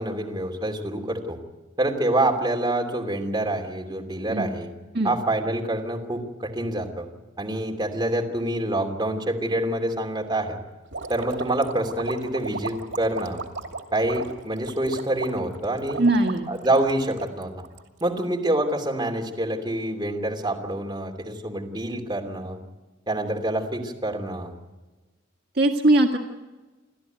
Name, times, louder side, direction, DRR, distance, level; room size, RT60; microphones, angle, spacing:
voice 1, 0.0-1.4 1.8-4.7 5.0-7.0 7.4-10.6 11.1-13.4 13.9-16.0 16.5-17.5 18.0-22.6 23.1-24.5, right 1 dB, 25° right, 1 dB, 2.9 m, -26 dB
sound 1, 10.9-18.2, right 3 dB, 80° right, 2.5 m, -36 dB
voice 2, 16.0-16.5 25.6-26.2, right 1 dB, 55° right, 2 dB, 1.7 m, -20 dB
29.5 x 13.0 x 9.3 m, 1.2 s
head